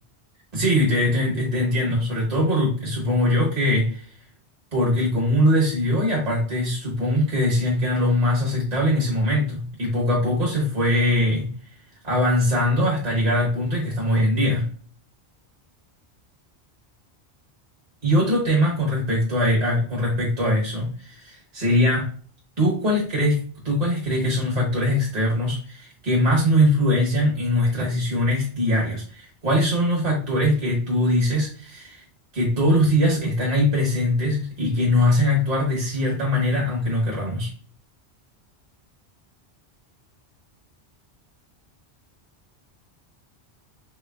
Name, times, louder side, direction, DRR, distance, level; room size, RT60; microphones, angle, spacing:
voice 1, 0.5-4.1 4.7-11.5 12.0-14.7 18.0-22.1 22.6-32.0 32.3-37.5, left 1 dB, 40° right, -3 dB, 1.2 m, -22 dB
4.5 x 3.1 x 2.3 m, 0.43 s
omnidirectional pair, 1.1 m